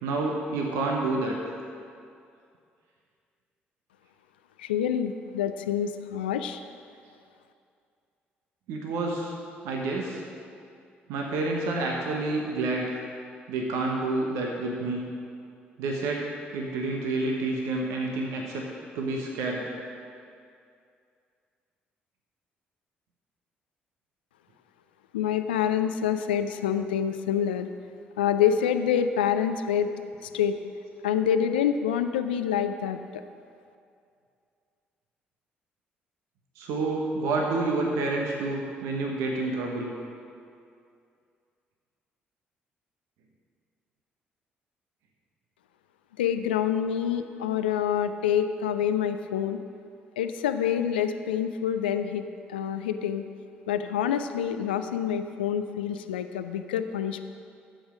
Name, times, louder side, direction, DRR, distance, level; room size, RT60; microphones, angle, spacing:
voice 1, 0.0-1.4 8.7-9.3 9.6-10.2 11.1-13.0 13.5-15.0 15.8-18.7 18.9-19.8 36.6-39.9, right 2 dB, 65° right, 0 dB, 1.1 m, -29 dB
voice 2, 4.6-6.6 25.1-27.7 28.2-29.9 30.2-30.6 31.0-33.2 46.2-49.6 50.2-53.2 53.7-57.2, left 9 dB, 80° left, 9 dB, 0.4 m, -27 dB
13.0 x 7.8 x 5.0 m, 2.4 s
figure-of-eight pair, 45°, 5 cm